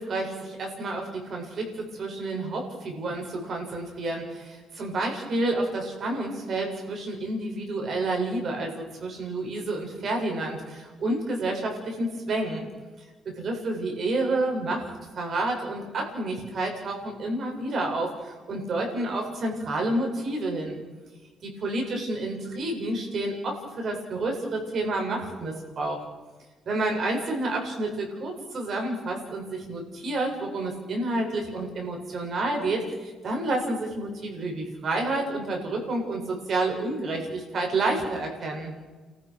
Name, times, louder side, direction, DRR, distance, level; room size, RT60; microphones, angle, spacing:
voice 1, 0.0-12.6 13.2-20.8 21.4-26.0 26.7-38.7, right 2 dB, 55° right, 1 dB, 7.8 m, -29 dB
30.0 x 14.5 x 6.5 m, 1.3 s
cardioid pair, 90°, 0 cm